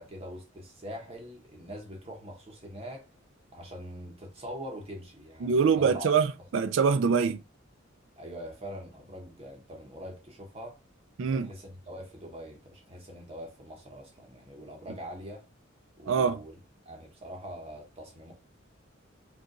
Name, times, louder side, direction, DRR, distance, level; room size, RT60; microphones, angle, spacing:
voice 1, 0.0-3.1 3.5-6.1 8.2-10.8 11.2-15.4 16.0-16.5 16.8-18.3, equal, 30° right, 1.0 m, -43 dB
voice 2, 5.4-7.4 11.2-11.5 16.1-16.4, right 6 dB, 65° right, 0.4 m, -24 dB
5.2 x 2.5 x 3.8 m
head